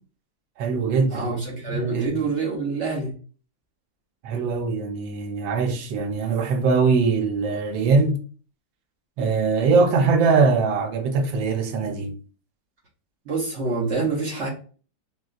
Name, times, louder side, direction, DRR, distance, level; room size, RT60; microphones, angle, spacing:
voice 1, 0.6-1.3 1.7-2.2 4.2-8.2 9.2-12.1, right 4 dB, 80° right, 1.4 m, -22 dB
voice 2, 1.1-3.1 13.3-14.5, right 4 dB, 60° right, 0.7 m, -26 dB
3.9 x 2.3 x 2.3 m
omnidirectional pair, 2.0 m